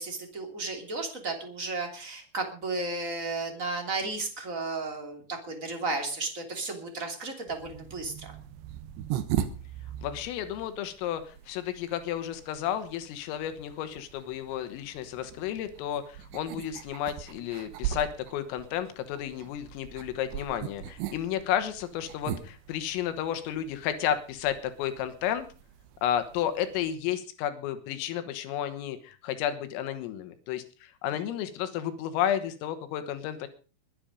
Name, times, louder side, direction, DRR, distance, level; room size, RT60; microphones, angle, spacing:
voice 1, 0.0-8.3 31.1-31.2, right 3 dB, 25° right, 4 dB, 2.1 m, -34 dB
sound 1, 7.5-26.9, right 10 dB, 70° right, 2.9 m, -40 dB
voice 2, 10.0-25.5 26.0-33.5, left 10 dB, 85° left, 10 dB, 3.9 m, -32 dB
22.0 x 8.9 x 5.1 m, 0.36 s
omnidirectional pair, 5.9 m